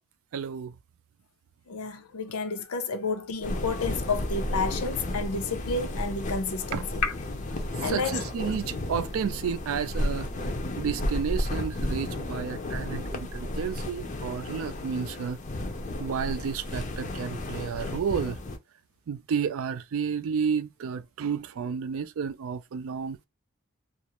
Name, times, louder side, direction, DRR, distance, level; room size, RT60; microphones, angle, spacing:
voice 1, 0.3-0.7 6.7-6.8 7.8-15.4 16.0-18.4 19.1-23.3, right 7 dB, 70° right, 0.3 m, -31 dB
voice 2, 1.7-7.1 7.8-8.4, left 4 dB, 90° left, 0.6 m, -31 dB
sound 1, 3.4-18.6, left 1 dB, 35° left, 0.5 m, -33 dB
2.4 x 2.0 x 2.9 m
head